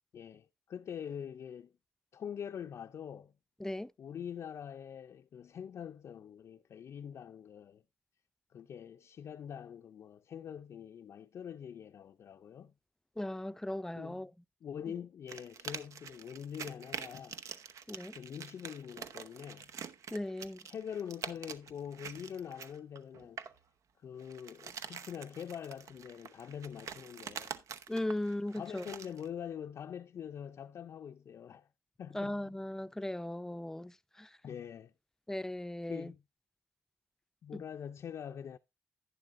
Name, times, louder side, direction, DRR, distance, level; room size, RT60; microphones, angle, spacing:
voice 1, 0.1-1.7 2.1-3.3 4.0-7.8 8.5-12.7 14.0-14.3 14.6-17.4 18.1-19.7 20.7-23.4 24.0-27.6 28.6-31.7 32.0-32.4 34.4-34.9 35.9-36.2 37.4-38.6, left 8 dB, 70° left, 0.5 m, -44 dB
voice 2, 3.6-3.9 13.2-14.3 17.9-18.2 20.1-20.6 27.9-28.9 32.1-34.3 35.3-36.1 37.5-37.6, left 1 dB, 10° left, 0.5 m, -37 dB
sound 1, 15.3-23.6 24.2-29.3, right 7 dB, 75° right, 0.8 m, -46 dB
11.0 x 9.9 x 2.5 m
cardioid pair, 80°, 5 cm